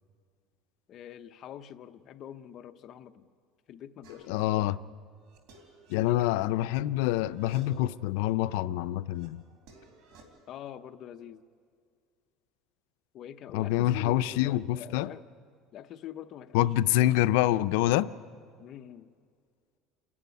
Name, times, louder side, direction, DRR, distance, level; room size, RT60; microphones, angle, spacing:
voice 1, 0.9-3.3 3.7-4.8 6.0-6.5 10.5-11.4 13.1-15.3 15.7-17.0 18.6-19.1, left 10 dB, 40° left, 9 dB, 0.8 m, -45 dB
sound 1, 4.0-4.5 5.0-6.8 7.1-8.0 8.4-10.2, right 3 dB, 70° right, 3.6 m, -56 dB
voice 2, 4.3-4.8 5.9-9.4 13.5-15.1 16.5-18.1, left 14 dB, 85° left, 14 dB, 0.5 m, -26 dB
28.5 x 11.0 x 9.5 m, 2.1 s
cardioid pair, 150°, 0 cm